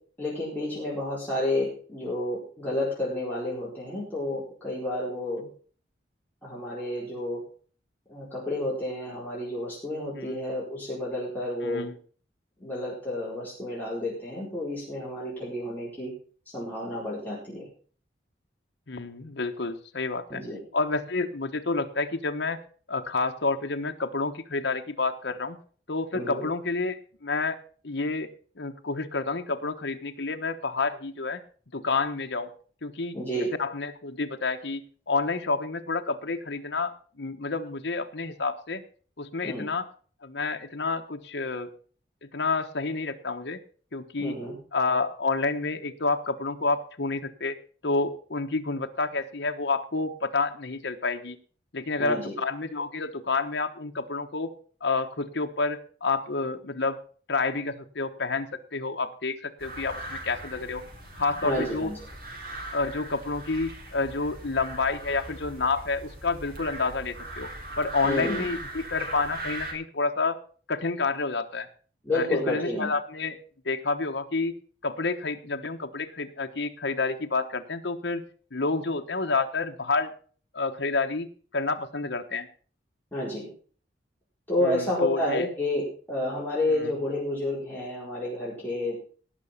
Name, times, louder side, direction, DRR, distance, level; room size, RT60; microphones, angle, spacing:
voice 1, 0.2-5.4 6.4-7.4 8.1-11.9 12.6-16.1 16.5-17.7 20.3-20.6 26.1-26.5 33.1-33.5 39.4-39.7 44.2-44.5 52.0-52.4 61.4-62.0 68.0-68.5 72.0-72.9 83.1-83.5 84.5-89.0, left 1 dB, 10° left, -7 dB, 4.5 m, -30 dB
voice 2, 11.6-12.0 18.9-20.4 20.7-22.6 22.9-25.6 25.9-27.6 27.8-28.3 28.6-31.4 31.7-32.5 32.8-33.2 33.6-38.8 39.2-39.9 40.2-41.7 42.2-43.6 43.9-44.4 44.7-47.6 47.8-51.4 51.7-54.5 54.8-57.0 57.3-60.8 61.1-61.9 62.7-67.5 67.8-70.4 70.7-71.7 72.1-73.4 73.6-74.6 74.8-78.2 78.5-80.1 80.5-82.5 84.6-85.5 86.8-86.9, left 3 dB, 70° left, 5 dB, 1.1 m, -29 dB
sound 1, 59.6-69.7, right 1 dB, 50° right, 3.7 m, -39 dB
17.5 x 6.1 x 5.6 m, 0.43 s
head